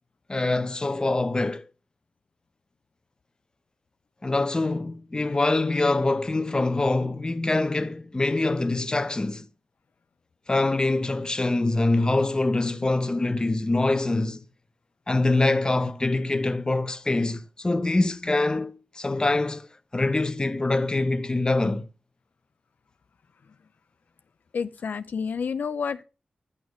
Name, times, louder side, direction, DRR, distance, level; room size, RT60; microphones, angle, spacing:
voice 1, 0.3-1.7 4.2-9.5 10.5-14.4 15.1-19.7 19.9-21.9, left 2 dB, 25° left, 0.8 m, -24 dB
voice 2, 24.5-26.0, left 6 dB, 75° left, 0.4 m, -29 dB
11.0 x 6.4 x 4.9 m
wide cardioid pair, 80°, 3 cm